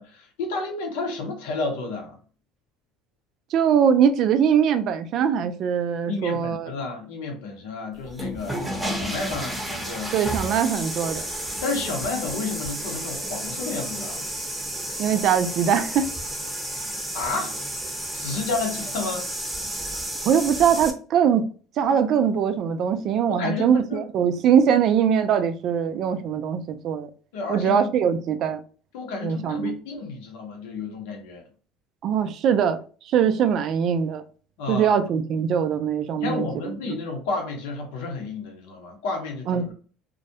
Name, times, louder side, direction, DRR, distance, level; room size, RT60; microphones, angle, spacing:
voice 1, 0.2-2.2 6.0-10.1 11.6-14.2 17.1-17.6 18.1-19.2 23.3-24.0 27.3-27.9 28.9-31.4 34.6-35.0 36.2-39.7, left 3 dB, 85° left, 0.7 m, -31 dB
voice 2, 3.5-6.7 10.1-11.2 15.0-16.1 20.2-21.5 21.8-27.1 27.5-28.6 29.2-29.8 32.0-32.8 33.1-34.2 34.7-37.0 39.5-39.7, right 8 dB, 55° right, 0.3 m, -22 dB
sound 1, 8.0-20.9, right 1 dB, 5° right, 0.7 m, -32 dB
2.2 x 2.1 x 2.7 m
supercardioid pair, 90°, 0 cm